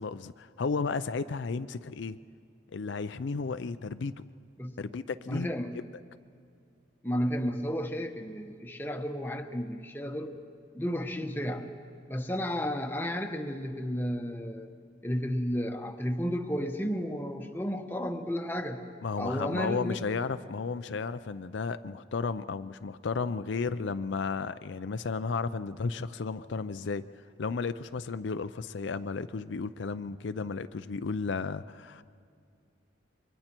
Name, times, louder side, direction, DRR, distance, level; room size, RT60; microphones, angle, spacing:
voice 1, 0.0-2.2 2.7-4.3 4.8-5.5 19.0-27.0 27.4-32.0, left 4 dB, 65° left, 11 dB, 0.5 m, -33 dB
voice 2, 5.3-5.7 7.0-10.4 10.7-11.6 12.1-14.8 15.0-18.8 19.2-20.0, equal, 10° left, 4 dB, 1.0 m, -32 dB
27.5 x 24.0 x 4.5 m, 2.3 s
head